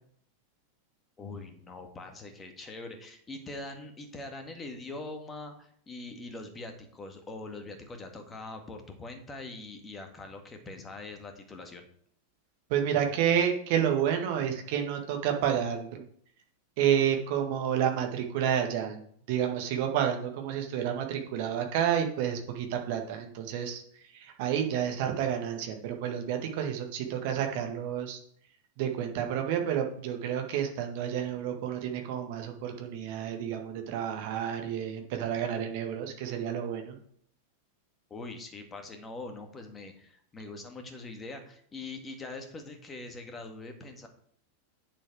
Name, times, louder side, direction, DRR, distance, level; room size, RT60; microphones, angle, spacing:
voice 1, 1.2-11.8 38.1-44.1, left 2 dB, 20° left, 5 dB, 1.9 m, -43 dB
voice 2, 12.7-16.1 16.8-19.0 19.3-28.2 28.8-37.0, right 9 dB, 50° right, 4 dB, 1.7 m, -30 dB
8.9 x 7.1 x 4.8 m, 0.63 s
figure-of-eight pair, 90°, 0 cm